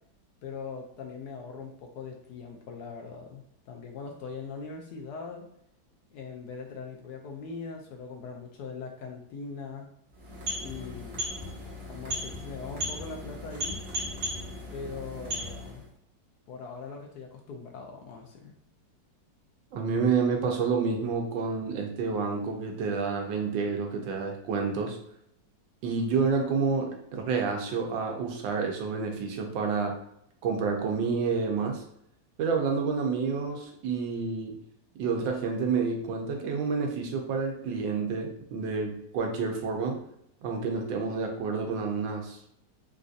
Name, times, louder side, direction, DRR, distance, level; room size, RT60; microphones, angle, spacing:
voice 1, 0.4-5.4 6.1-9.9 10.6-11.2 11.9-13.8 14.7-15.8 16.5-18.6, left 5 dB, 70° left, 1 dB, 1.0 m, -41 dB
sound 1, 10.1-15.9, left 1 dB, 55° right, 1.3 m, -36 dB
voice 2, 19.7-25.0 25.8-29.9 30.4-31.8 32.4-34.6 35.0-40.0 40.4-42.4, right 5 dB, 85° right, 2 dB, 1.4 m, -29 dB
3.9 x 2.6 x 2.4 m, 0.74 s
omnidirectional pair, 2.0 m